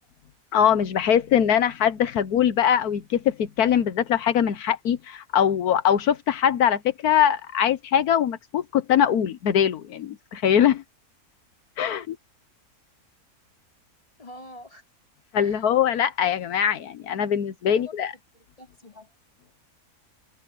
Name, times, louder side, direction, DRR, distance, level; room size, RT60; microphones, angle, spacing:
voice 1, 0.5-10.8 11.8-12.2 15.3-18.1, left 9 dB, 80° left, 1.4 m, -22 dB
voice 2, 14.2-14.8 15.4-15.7 17.7-18.0 18.3-19.1, left 1 dB, 20° left, 3.9 m, -45 dB
omnidirectional pair, 1.6 m